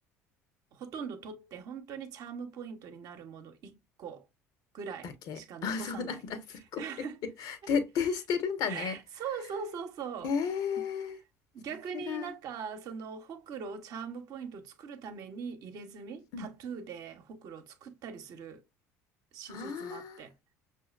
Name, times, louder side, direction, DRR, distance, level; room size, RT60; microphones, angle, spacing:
voice 1, 0.7-4.3 4.7-6.2 6.8-7.2 8.7-10.3 11.5-18.6 19.3-20.3, right 6 dB, 55° right, 0.9 m, -41 dB
voice 2, 5.0-6.8 7.4-9.0 10.2-11.2 12.1-12.3 16.3-16.5 19.5-20.2, left 6 dB, 55° left, 1.0 m, -33 dB
6.2 x 2.8 x 2.4 m
figure-of-eight pair, 60°, 8 cm